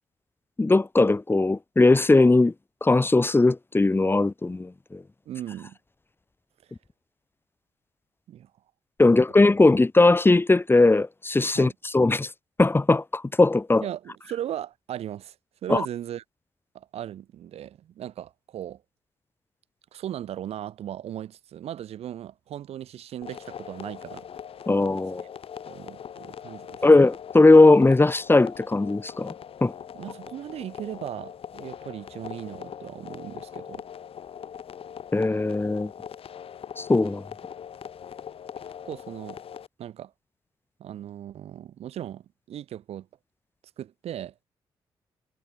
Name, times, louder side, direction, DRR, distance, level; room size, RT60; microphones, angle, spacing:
voice 1, 0.6-2.5 2.8-5.0 9.0-12.3 12.6-13.8 15.7-15.9 24.7-25.2 26.8-29.3 29.6-29.7 35.1-35.9 36.8-37.2, left 2 dB, 20° left, 2.1 m, -19 dB
voice 2, 5.3-5.8 8.3-8.5 9.1-9.2 11.5-11.7 13.8-15.3 15.6-16.2 16.7-18.8 19.9-24.3 25.7-26.8 29.9-33.8 38.8-39.4 39.8-40.1 40.8-43.1 43.8-44.3, right 11 dB, 80° right, 4.7 m, -37 dB
sound 1, 23.2-39.7, left 8 dB, 65° left, 3.8 m, -41 dB
cardioid pair, 75°, 10 cm